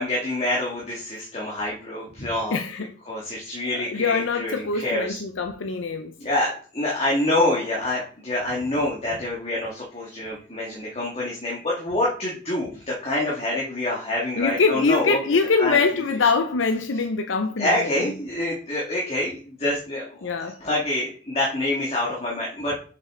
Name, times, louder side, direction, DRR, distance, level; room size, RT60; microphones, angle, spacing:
voice 1, 0.0-2.6 3.1-5.2 6.2-15.2 15.6-15.8 16.1-16.3 17.6-22.7, left 1 dB, 35° left, 2.0 m, -26 dB
voice 2, 2.5-2.9 3.7-6.1 14.4-17.9 20.2-20.6, left 4 dB, 85° left, 0.6 m, -23 dB
7.5 x 6.0 x 3.8 m
head